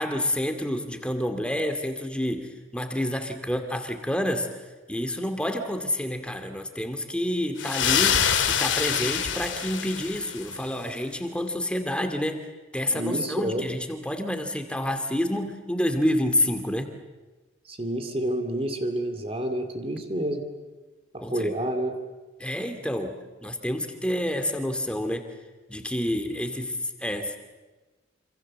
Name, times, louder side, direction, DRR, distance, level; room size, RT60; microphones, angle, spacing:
voice 1, 0.0-4.6 4.9-12.4 12.7-16.9 21.2-21.5 22.4-25.3 25.7-27.4, left 1 dB, 5° left, 6 dB, 2.3 m, -28 dB
sound 1, 7.6-10.6, left 8 dB, 80° left, 2.2 m, -25 dB
voice 2, 12.9-13.7 17.7-20.4 21.3-22.0, right 1 dB, 30° right, 6 dB, 2.6 m, -29 dB
27.0 x 27.0 x 7.6 m, 1.2 s
head